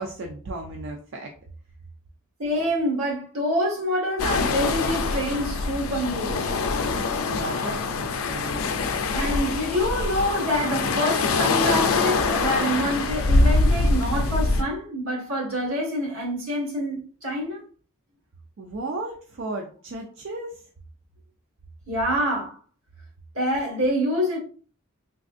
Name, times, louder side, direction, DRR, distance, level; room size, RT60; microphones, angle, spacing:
voice 1, 0.0-1.3 7.3-8.6 18.6-20.6, right 2 dB, 55° right, 0.4 m, -34 dB
voice 2, 2.4-6.5 9.1-17.6 21.9-22.6 23.3-24.4, equal, 80° right, 1.5 m, -26 dB
sound 1, 4.2-14.6, left 3 dB, 75° left, 0.4 m, -24 dB
3.4 x 2.4 x 2.5 m
head